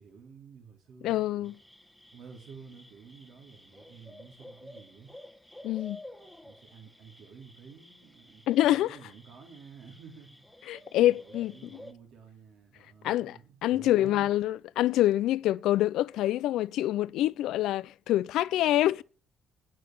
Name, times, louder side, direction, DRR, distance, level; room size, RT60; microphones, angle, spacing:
voice 1, 0.0-1.5 2.1-5.1 6.4-10.4 11.0-14.3, right 6 dB, 75° right, 3.1 m, -51 dB
voice 2, 1.0-1.6 5.6-6.0 8.5-9.0 10.7-11.5 13.0-19.0, left 14 dB, 90° left, 0.4 m, -26 dB
sound 1, 1.4-11.9, left 1 dB, ahead, 1.2 m, -52 dB
9.4 x 6.2 x 7.2 m
cardioid pair, 90°, 0 cm